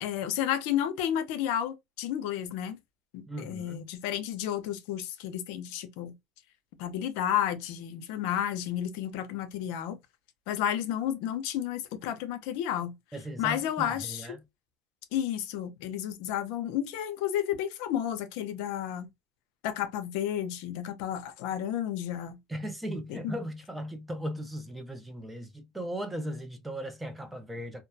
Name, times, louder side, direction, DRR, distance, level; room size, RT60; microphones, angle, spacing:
voice 1, 0.0-2.8 3.1-6.1 6.8-10.0 10.5-13.0 13.4-14.3 15.1-19.1 19.6-22.4 23.1-23.3, left 10 dB, 70° left, 0.5 m, -32 dB
voice 2, 3.3-3.9 13.1-14.4 22.5-27.8, equal, 5° right, 0.3 m, -37 dB
2.2 x 2.2 x 2.5 m
cardioid pair, 160°, 0 cm